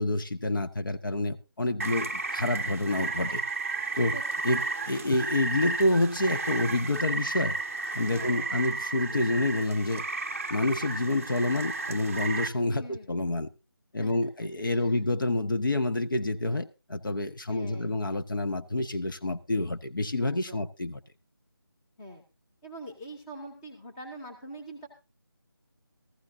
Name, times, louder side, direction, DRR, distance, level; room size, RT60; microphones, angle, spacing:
voice 1, 0.0-3.4 4.0-4.2 4.4-7.5 7.9-10.0 10.5-13.5 13.9-21.0, left 2 dB, 60° left, 8 dB, 0.9 m, -28 dB
Rain, 1.8-12.5, right 3 dB, 35° right, 0.5 m, -33 dB
voice 2, 8.1-8.5 12.7-13.1 14.0-14.3 14.7-15.0 17.5-18.0 20.2-20.7 22.0-22.2 22.6-24.9, right 1 dB, 5° left, 1 dB, 0.8 m, -44 dB
14.5 x 14.5 x 2.7 m, 0.27 s
figure-of-eight pair, 165°, 13 cm